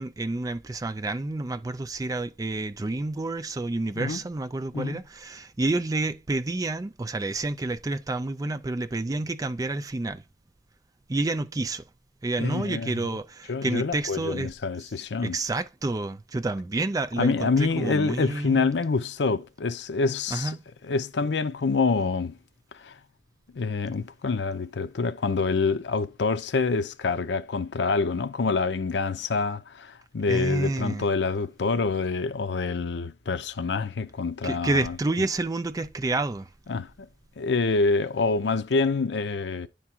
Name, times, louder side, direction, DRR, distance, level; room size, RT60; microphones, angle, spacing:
voice 1, 0.0-10.2 11.1-11.8 12.2-14.5 15.2-18.7 20.3-20.6 30.3-31.1 34.4-36.5, right 2 dB, 20° right, 0.4 m, -29 dB
voice 2, 12.4-13.1 13.5-15.4 17.2-20.5 20.8-22.4 22.7-23.0 23.5-35.0 36.7-37.1 37.4-39.7, left 4 dB, 80° left, 0.5 m, -26 dB
10.0 x 3.6 x 4.4 m
head